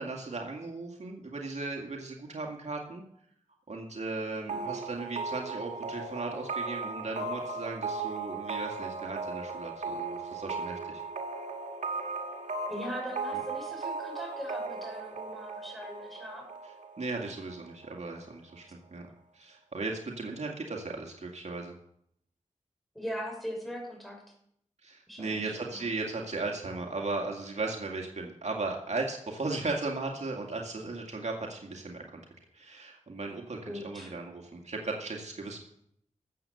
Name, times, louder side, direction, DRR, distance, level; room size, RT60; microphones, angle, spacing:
voice 1, 0.0-3.0 3.7-11.0 17.0-19.1 19.3-21.7 24.8-32.2 32.5-35.6, right 3 dB, 65° right, 1 dB, 2.2 m, -36 dB
voice 2, 4.4-4.7 12.7-16.5 22.9-24.2 25.1-25.9 33.7-34.1, equal, ahead, 1 dB, 6.0 m, -40 dB
sound 1, 4.5-18.0, right 4 dB, 85° right, 1.4 m, -37 dB
14.0 x 7.9 x 7.0 m, 0.71 s
cardioid pair, 45°, 13 cm